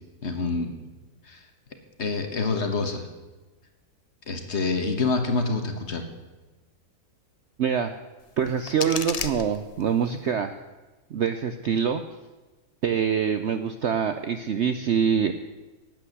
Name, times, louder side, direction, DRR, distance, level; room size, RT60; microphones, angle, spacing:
voice 1, 0.2-0.8 1.3-1.4 2.0-3.1 4.3-6.0, left 3 dB, 45° left, 6 dB, 1.5 m, -27 dB
voice 2, 7.6-8.0 8.4-10.6 11.1-12.0 12.8-15.3, right 7 dB, 60° right, 8 dB, 0.7 m, -25 dB
sound 1, 8.2-10.2, left 5 dB, 65° left, 0.3 m, -35 dB
11.0 x 9.2 x 7.9 m, 1.2 s
omnidirectional pair, 1.7 m